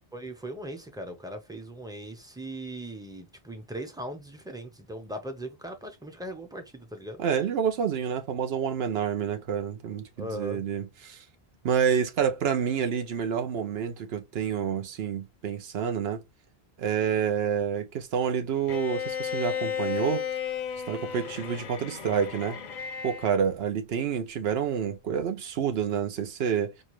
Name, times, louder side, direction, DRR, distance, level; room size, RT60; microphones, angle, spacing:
voice 1, 0.1-7.2 10.2-10.6, right 1 dB, 5° right, 0.6 m, -39 dB
voice 2, 7.2-11.2 11.6-16.2 16.8-20.3 20.9-22.6 23.0-26.7, right 7 dB, 75° right, 0.9 m, -28 dB
Bowed string instrument, 18.7-23.4, left 8 dB, 50° left, 0.6 m, -33 dB
4.3 x 2.2 x 3.0 m
omnidirectional pair, 1.0 m